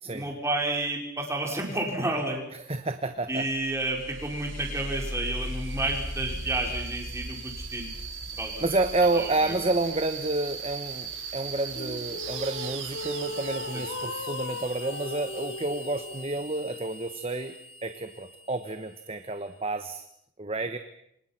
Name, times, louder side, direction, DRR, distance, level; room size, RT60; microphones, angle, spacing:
voice 1, 0.1-2.4 3.3-7.9 8.4-8.6 9.1-9.5 13.7-14.2, right 2 dB, 15° right, 1 dB, 5.2 m, -31 dB
voice 2, 2.7-3.5 8.6-20.0 20.4-20.8, right 2 dB, 30° right, 8 dB, 1.1 m, -30 dB
sound 1, 3.4-19.7, right 2 dB, 70° right, 7.2 m, -39 dB
sound 2, 11.7-16.3, left 2 dB, 60° left, 3.2 m, -38 dB
28.5 x 26.5 x 6.0 m, 0.75 s
head